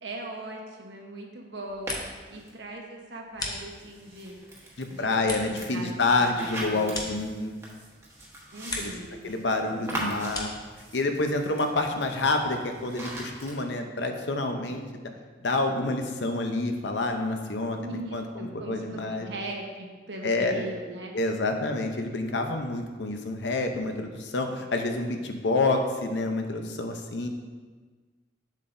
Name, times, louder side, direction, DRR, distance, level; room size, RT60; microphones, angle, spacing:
voice 1, 0.0-4.4 4.9-6.0 6.2-6.5 6.7-7.2 8.5-9.4 17.8-21.1, right 2 dB, 70° right, 0 dB, 1.1 m, -40 dB
sound 1, 1.5-2.4 2.7-4.1 4.6-7.8 8.2-9.1 9.4-10.7, left 2 dB, 20° left, 0.8 m, -39 dB
sound 2, 1.9-2.5 3.5-13.6, right 1 dB, 15° right, 1.2 m, -41 dB
voice 2, 4.8-7.6 8.8-8.9 9.2-10.5 10.9-15.0 15.4-19.3 20.2-20.7 21.1-27.3, left 2 dB, 75° left, 5 dB, 0.7 m, -28 dB
7.6 x 7.4 x 2.7 m, 1.4 s
head